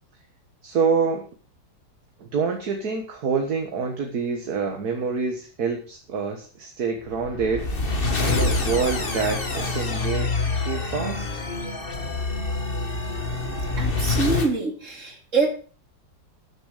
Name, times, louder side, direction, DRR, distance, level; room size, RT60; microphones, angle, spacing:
voice 1, 0.6-1.3 2.2-7.7 8.2-11.3, right 5 dB, 55° right, 3 dB, 2.0 m, -26 dB
sound 1, 7.1-14.5, left 3 dB, 30° left, 1.8 m, -26 dB
voice 2, 13.8-15.7, right 3 dB, 40° right, 3 dB, 3.1 m, -25 dB
13.0 x 7.3 x 6.6 m, 0.41 s
omnidirectional pair, 2.0 m